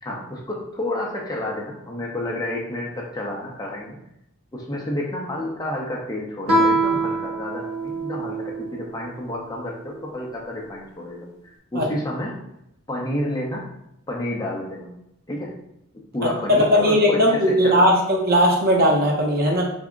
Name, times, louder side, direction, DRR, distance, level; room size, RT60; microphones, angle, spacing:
voice 1, 0.0-4.0 4.5-12.4 12.9-13.6 14.1-14.9 15.3-15.5 16.1-17.9, left 1 dB, 20° left, -2 dB, 0.6 m, -30 dB
Guitar, 6.5-8.9, right 2 dB, 85° right, 0.8 m, -23 dB
voice 2, 16.5-19.6, equal, 45° right, -1 dB, 0.6 m, -18 dB
3.4 x 2.0 x 3.6 m, 0.80 s
head